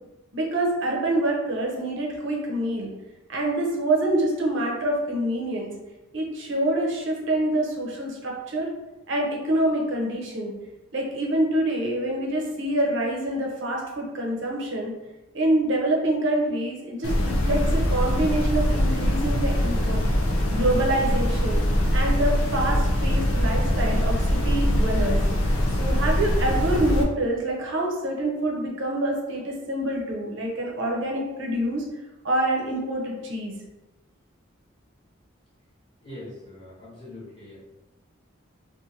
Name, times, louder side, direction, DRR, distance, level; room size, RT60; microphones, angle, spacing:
voice 1, 0.3-2.9 3.3-5.7 6.1-8.7 9.1-10.5 10.9-14.9 15.3-20.1 20.5-21.6 21.9-25.2 25.7-31.8 32.2-33.5, right 1 dB, 65° right, -1 dB, 0.6 m, -26 dB
sound 1, 17.0-27.0, equal, 90° left, 0.5 m, -23 dB
voice 2, 36.0-37.6, left 1 dB, 25° left, -9 dB, 1.1 m, -42 dB
2.6 x 2.5 x 2.7 m, 1.1 s
head